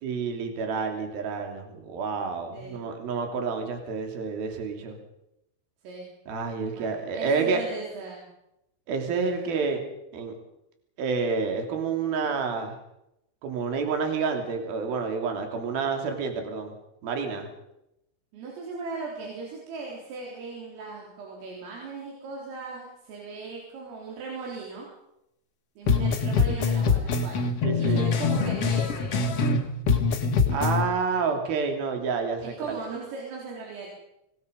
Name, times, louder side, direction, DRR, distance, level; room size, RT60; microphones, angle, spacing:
voice 1, 0.0-5.0 6.3-7.6 8.9-9.8 10.1-10.3 11.0-12.8 13.4-16.7 17.0-17.5 27.6-28.0 30.5-32.8, right 5 dB, 50° right, 4 dB, 4.4 m, -29 dB
voice 2, 6.7-8.2 18.3-24.9 25.8-27.5 27.8-29.2 32.4-33.9, right 4 dB, 85° right, -3 dB, 6.7 m, -38 dB
sound 1, 25.9-29.6 29.9-30.8, left 4 dB, 60° left, 1.6 m, -24 dB
26.0 x 20.5 x 5.3 m, 0.84 s
omnidirectional pair, 5.7 m